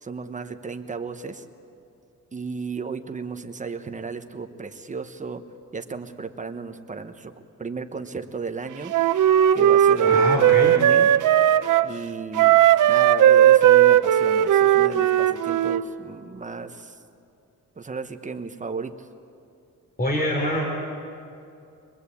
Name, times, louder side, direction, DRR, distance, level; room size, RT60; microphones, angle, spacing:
voice 1, 0.0-1.4 2.3-5.4 5.7-7.3 7.6-8.9 9.5-11.1 11.8-17.0 17.8-19.1, right 4 dB, 25° right, 7 dB, 1.1 m, -34 dB
Wind instrument woodwind instrument, 8.9-11.9 12.3-15.8, right 11 dB, 80° right, 0.7 m, -17 dB
voice 2, 10.0-10.8 20.0-20.6, equal, 30° left, 0 dB, 3.5 m, -25 dB
24.5 x 20.5 x 8.5 m, 2.5 s
wide cardioid pair, 145°, 31 cm